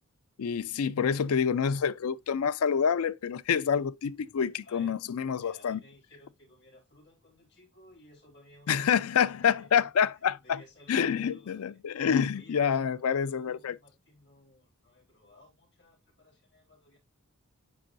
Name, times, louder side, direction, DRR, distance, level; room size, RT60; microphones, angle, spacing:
voice 1, 0.4-5.8 8.7-10.6 10.9-13.8, left 7 dB, 80° left, 0.4 m, -27 dB
voice 2, 4.0-5.0 5.3-11.8 12.3-17.0, left 1 dB, 55° left, 4.7 m, -58 dB
9.0 x 5.3 x 2.6 m
head